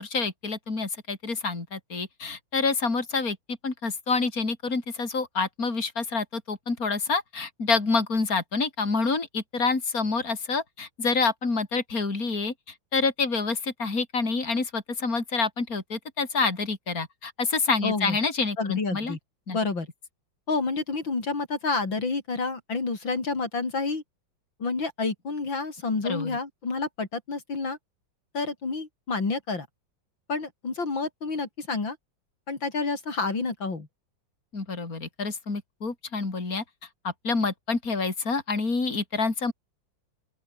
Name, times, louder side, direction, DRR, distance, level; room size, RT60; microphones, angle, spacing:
voice 1, 0.0-3.4 3.6-12.5 12.9-19.2 19.5-19.6 26.0-26.4 34.5-36.6 37.0-39.5, left 4 dB, 45° left, 4.5 m, -27 dB
voice 2, 17.8-18.2 18.6-19.2 19.5-19.9 20.5-24.0 24.6-27.8 28.3-29.7 30.3-32.0 32.5-33.9, left 3 dB, 70° left, 4.8 m, -29 dB
open air
omnidirectional pair, 2.1 m